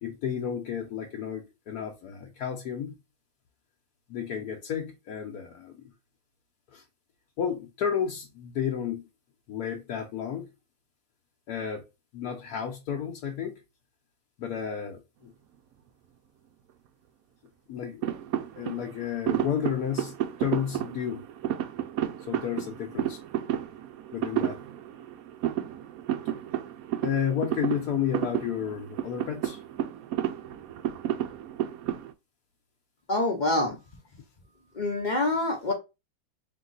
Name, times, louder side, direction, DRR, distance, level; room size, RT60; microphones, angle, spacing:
voice 1, 0.0-3.0 4.1-5.8 6.7-6.8 7.4-9.1 9.5-10.5 11.5-11.8 12.1-13.6 14.4-15.3 17.7-18.0 18.6-21.3 22.3-23.2 24.1-24.6 27.0-29.6, left 8 dB, 65° left, 1.1 m, -32 dB
sound 1, 18.0-32.1, right 11 dB, 80° right, 0.8 m, -32 dB
voice 2, 33.1-33.8 34.8-35.7, left 2 dB, 45° left, 0.5 m, -26 dB
3.7 x 3.0 x 3.9 m
omnidirectional pair, 2.0 m